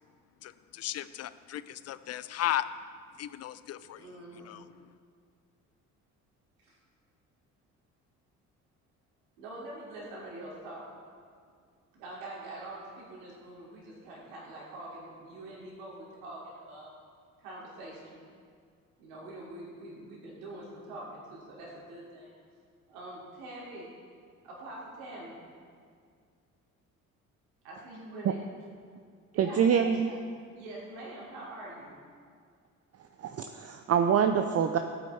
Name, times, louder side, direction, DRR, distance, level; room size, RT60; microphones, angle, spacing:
voice 1, 0.4-2.7 3.2-4.1 4.4-4.6, left 13 dB, 35° left, 15 dB, 0.5 m, -35 dB
voice 2, 4.0-4.6 6.6-6.8 9.4-10.9 11.9-16.9 17.4-18.1 19.0-22.4 22.9-23.9 24.4-25.4 27.6-28.4 29.3-30.1 30.5-31.9, right 1 dB, 70° right, -5 dB, 3.1 m, -44 dB
voice 3, 29.4-30.1 33.2-34.8, right 7 dB, 35° right, 6 dB, 0.7 m, -25 dB
16.5 x 9.2 x 3.6 m, 2.1 s
figure-of-eight pair, 45°, 43 cm